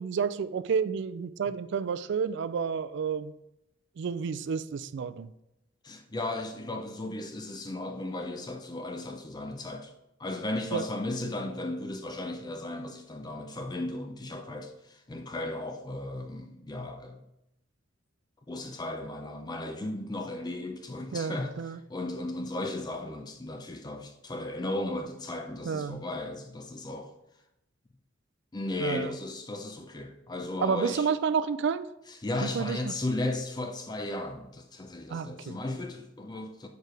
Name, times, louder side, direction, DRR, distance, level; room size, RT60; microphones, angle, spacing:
voice 1, 0.0-3.3 4.0-5.3 10.7-10.8 21.1-21.8 25.6-26.0 28.8-29.1 30.6-31.9 32.4-32.9 35.1-35.6, right 6 dB, 65° right, 0.3 m, -30 dB
voice 2, 5.8-9.9 10.2-17.2 18.5-21.5 21.9-27.1 28.5-31.1 32.2-36.7, left 2 dB, 20° left, 0.5 m, -35 dB
4.7 x 4.6 x 5.0 m
head